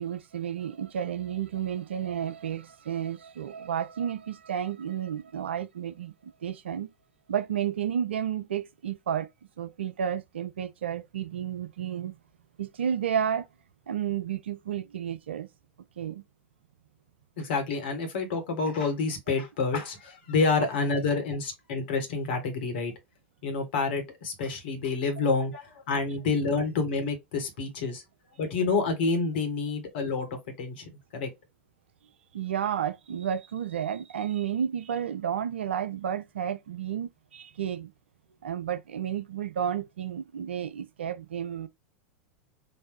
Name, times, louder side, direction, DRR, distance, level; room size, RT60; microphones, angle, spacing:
voice 1, 0.0-6.9 7.3-9.3 9.6-12.2 12.6-13.5 13.9-15.5 16.0-16.2 32.3-37.9 38.4-41.7, right 9 dB, 65° right, 0.4 m, -31 dB
voice 2, 17.4-22.9 23.4-28.0 28.4-30.3 30.6-31.3, left 4 dB, 55° left, 1.6 m, -28 dB
4.2 x 2.6 x 3.1 m
figure-of-eight pair, 85°, 6 cm